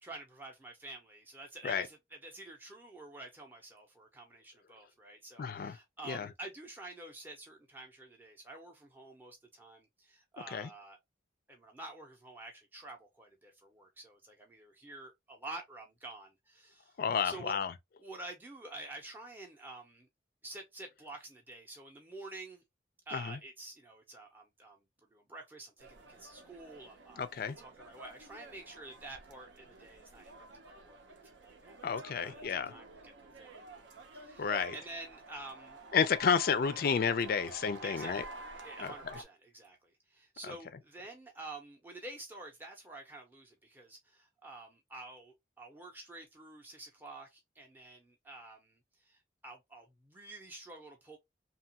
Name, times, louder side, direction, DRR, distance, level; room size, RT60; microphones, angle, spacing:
voice 1, 0.0-2.0 2.2-11.0 11.5-17.0 17.2-17.6 18.0-20.1 20.4-22.6 23.1-24.8 25.1-33.5 34.1-35.8 37.8-51.2, right 2 dB, 10° right, 0.5 m, -49 dB
voice 2, 5.4-5.8 6.0-6.3 10.5-10.7 17.0-17.7 23.1-23.4 27.2-27.6 31.8-32.7 34.4-34.8 35.9-38.2 38.8-38.9 40.4-40.5, left 6 dB, 50° left, 0.4 m, -31 dB
sound 1, 25.8-39.2, right 2 dB, 75° right, 0.6 m, -50 dB
2.9 x 2.3 x 2.7 m
head